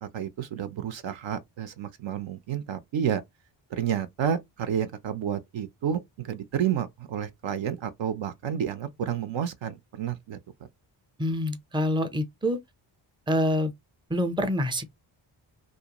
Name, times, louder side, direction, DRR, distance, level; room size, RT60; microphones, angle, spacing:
voice 1, 0.0-3.2 3.7-10.4, right 9 dB, 65° right, 0.6 m, -30 dB
voice 2, 11.2-12.6 13.3-13.7 14.1-14.8, equal, 10° right, 0.6 m, -26 dB
2.5 x 2.1 x 2.9 m
cardioid pair, 50°, 49 cm